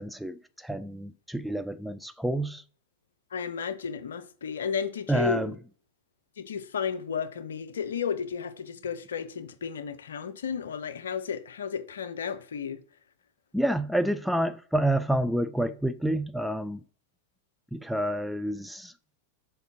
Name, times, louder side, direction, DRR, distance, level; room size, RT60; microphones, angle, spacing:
voice 1, 0.0-2.6 5.1-5.6 13.5-16.8 17.7-18.9, right 1 dB, ahead, 0.4 m, -28 dB
voice 2, 3.3-5.5 6.4-12.8, left 7 dB, 65° left, 0.6 m, -33 dB
6.6 x 4.6 x 3.6 m
figure-of-eight pair, 90°, 0 cm